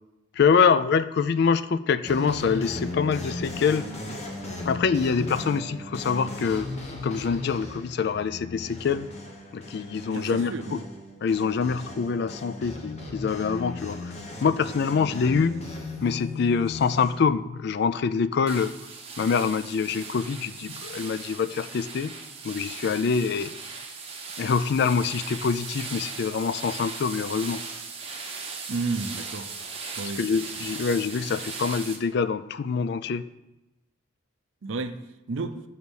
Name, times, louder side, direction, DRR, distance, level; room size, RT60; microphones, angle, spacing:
voice 1, 0.4-3.9 4.6-6.7 7.0-9.1 9.5-10.8 11.2-14.0 14.4-15.5 16.0-18.7 19.2-22.1 22.4-23.5 24.4-27.6 30.2-33.3, left 5 dB, 50° left, 14 dB, 0.3 m, -25 dB
sound 1, 2.0-17.1, left 2 dB, 30° left, 1.2 m, -37 dB
voice 2, 10.1-10.8 28.7-29.5 30.0-30.2 34.6-35.0 35.3-35.6, right 3 dB, 70° right, 10 dB, 0.5 m, -31 dB
sound 2, 18.5-32.0, right 4 dB, 30° right, 0.9 m, -38 dB
7.1 x 4.0 x 6.3 m, 0.97 s
head